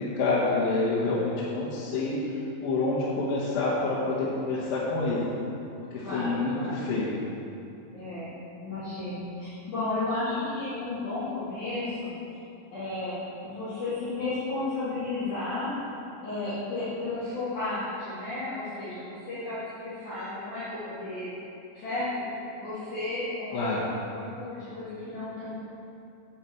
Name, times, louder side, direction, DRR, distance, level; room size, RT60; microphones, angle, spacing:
voice 1, 0.0-5.3 5.9-7.1 23.5-23.8, left 3 dB, 80° left, -8 dB, 3.0 m, -27 dB
voice 2, 6.0-6.9 7.9-8.3 8.6-12.1 12.7-15.7 16.2-21.3 21.7-22.1 22.6-23.7 24.1-25.5, left 2 dB, 60° left, -15 dB, 3.7 m, -33 dB
9.4 x 8.1 x 4.5 m, 2.7 s
omnidirectional pair, 4.2 m